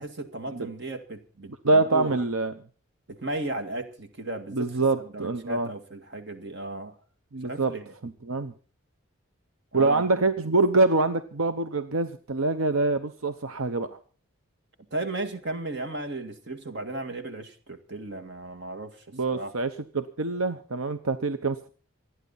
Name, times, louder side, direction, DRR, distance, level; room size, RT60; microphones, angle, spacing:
voice 1, 0.0-2.2 3.1-7.0 7.4-7.9 9.7-10.0 14.9-19.5, right 2 dB, 55° right, 8 dB, 1.9 m, -35 dB
voice 2, 1.6-2.5 4.5-5.7 7.3-7.7 8.0-8.5 9.7-14.0 19.1-21.7, right 3 dB, 85° right, 10 dB, 0.9 m, -25 dB
27.0 x 9.8 x 4.1 m, 0.38 s
head